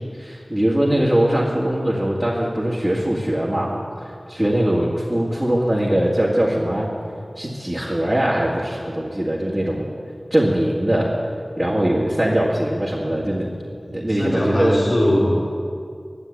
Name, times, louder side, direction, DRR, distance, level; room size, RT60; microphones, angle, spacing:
voice 1, 0.0-6.9 7.4-9.8 10.3-11.1 11.6-13.5 13.9-14.8, right 1 dB, 15° right, -5 dB, 2.0 m, -21 dB
voice 2, 13.8-15.4, left 1 dB, 65° left, -6 dB, 3.1 m, -21 dB
11.5 x 11.0 x 8.3 m, 2.3 s
wide cardioid pair, 55°, 0 cm